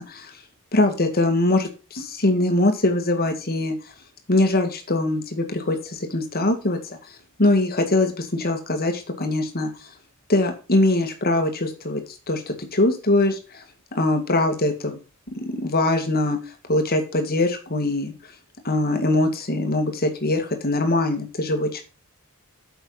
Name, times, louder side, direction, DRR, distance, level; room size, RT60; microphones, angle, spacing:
voice 1, 0.7-3.8 4.3-7.0 7.4-9.9 10.3-12.0 12.3-13.6 13.9-15.0 15.3-16.4 16.7-18.1 18.6-21.8, left 2 dB, 45° left, 5 dB, 2.2 m, -22 dB
9.2 x 6.9 x 4.0 m, 0.34 s
head